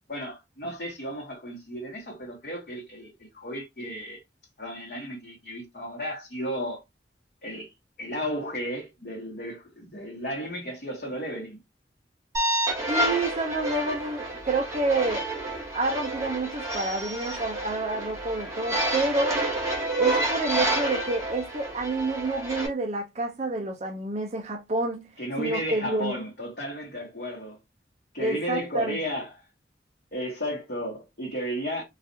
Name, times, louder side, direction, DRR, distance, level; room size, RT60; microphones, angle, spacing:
voice 1, 0.1-4.2 4.6-6.8 7.4-7.7 8.0-11.6 25.2-27.6 28.1-29.4 30.1-31.8, equal, 55° left, 1.1 m, -34 dB
sound 1, 12.3-22.7, right 1 dB, 20° right, 1.2 m, -29 dB
voice 2, 12.9-15.3 15.7-19.4 20.0-25.1 25.4-26.2 28.2-29.0, right 2 dB, 40° right, 0.5 m, -28 dB
4.0 x 2.4 x 2.7 m
head